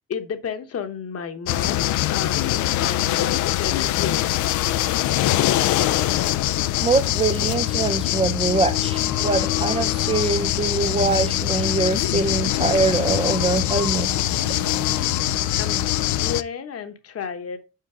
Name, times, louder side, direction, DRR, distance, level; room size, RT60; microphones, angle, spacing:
voice 1, 0.1-1.8 2.1-4.4 15.6-15.8 16.2-17.6, left 7 dB, 50° left, 1.1 m, -32 dB
sound 1, 1.5-16.4, left 14 dB, 75° left, 0.5 m, -23 dB
voice 2, 6.8-14.1, right 4 dB, 20° right, 0.5 m, -23 dB
sound 2, 8.4-15.8, right 4 dB, 55° right, 0.9 m, -38 dB
5.6 x 4.5 x 4.9 m
cardioid pair, 90°, 30 cm